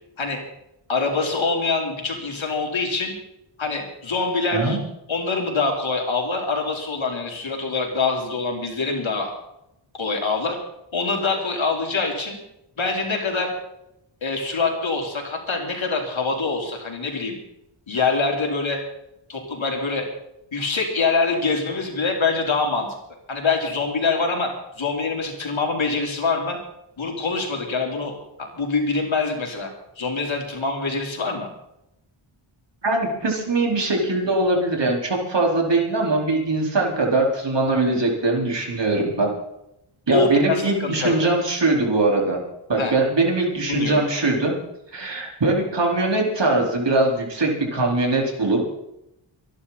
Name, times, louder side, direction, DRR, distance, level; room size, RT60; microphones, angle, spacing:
voice 1, 0.9-3.2 3.6-4.8 5.1-9.3 10.0-10.6 10.9-12.4 12.8-13.5 14.2-17.4 17.9-18.8 19.3-20.0 20.5-22.9 23.3-24.5 24.8-26.6 27.0-28.1 28.5-29.7 30.0-31.5 40.1-41.4 42.8-42.9 43.7-44.1, left 4 dB, 65° left, 1 dB, 4.3 m, -24 dB
voice 2, 32.8-39.3 40.1-42.4 42.7-44.5 44.9-48.6, right 2 dB, 60° right, -1 dB, 4.8 m, -21 dB
24.5 x 11.5 x 4.3 m, 0.84 s
cardioid pair, 65°, 49 cm